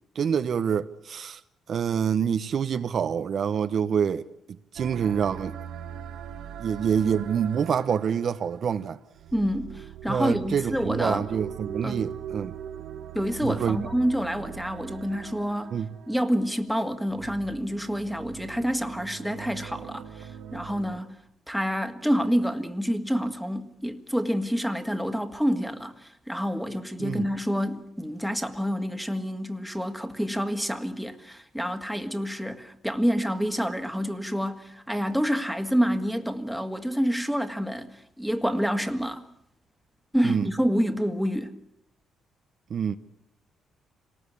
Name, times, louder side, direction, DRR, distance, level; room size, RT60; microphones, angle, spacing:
voice 1, 0.1-1.4 1.7-4.3 4.7-5.5 6.6-9.0 10.1-12.5 13.4-13.8 15.7-15.9 27.0-27.3 40.2-40.5 42.7-43.0, right 7 dB, 55° right, 0.8 m, -26 dB
sound 1, 4.8-21.0, right 9 dB, 80° right, 1.7 m, -41 dB
voice 2, 9.3-11.3 11.8-12.1 13.1-15.8 16.1-21.2 21.5-39.3 40.1-41.5, equal, ahead, 1.9 m, -28 dB
26.5 x 19.0 x 8.4 m
cardioid pair, 90°, 0 cm